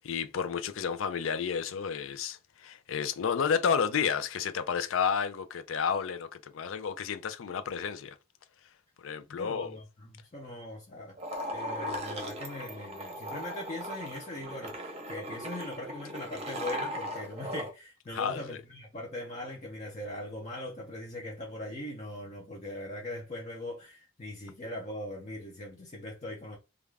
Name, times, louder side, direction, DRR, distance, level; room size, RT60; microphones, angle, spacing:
voice 1, 0.0-8.2 9.0-9.8 18.1-18.6, left 6 dB, 85° left, 0.4 m, -31 dB
voice 2, 9.3-11.2 11.5-26.6, left 1 dB, 35° left, 0.6 m, -40 dB
sound 1, 11.2-17.7, equal, 30° right, 0.7 m, -38 dB
2.4 x 2.3 x 3.2 m
head